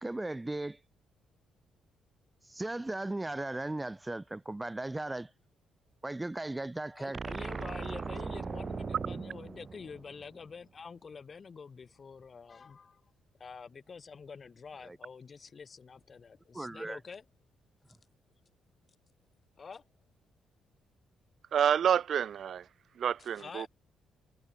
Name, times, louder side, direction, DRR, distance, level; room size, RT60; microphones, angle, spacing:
voice 1, 0.0-0.8 2.5-5.3 6.0-7.2 14.8-15.0 16.5-17.0, right 2 dB, 15° right, 3.4 m, -37 dB
voice 2, 7.0-13.0 13.4-17.2 19.6-19.8 23.2-23.7, left 5 dB, 40° left, 3.6 m, -47 dB
sound 1, 7.1-10.5, right 5 dB, 35° right, 0.9 m, -39 dB
voice 3, 21.5-22.6 23.0-23.7, right 8 dB, 60° right, 0.4 m, -28 dB
cardioid pair, 90°, 0 cm